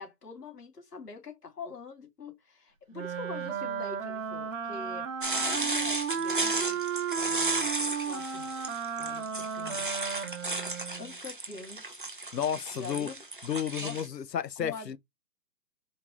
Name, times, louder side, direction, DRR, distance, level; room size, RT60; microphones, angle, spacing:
voice 1, 0.0-6.8 7.1-7.7 8.0-8.5 9.0-9.9 11.0-12.0 12.7-13.2 13.8-14.2 14.6-14.9, left 4 dB, 70° left, 2.8 m, -44 dB
Wind instrument woodwind instrument, 2.9-11.2, right 6 dB, 55° right, 1.3 m, -34 dB
sound 1, 5.2-14.1, right 2 dB, 35° right, 0.5 m, -34 dB
voice 2, 12.3-13.1 13.4-15.0, left 9 dB, 90° left, 0.9 m, -32 dB
4.6 x 3.5 x 3.1 m
hypercardioid pair, 170°, 48 cm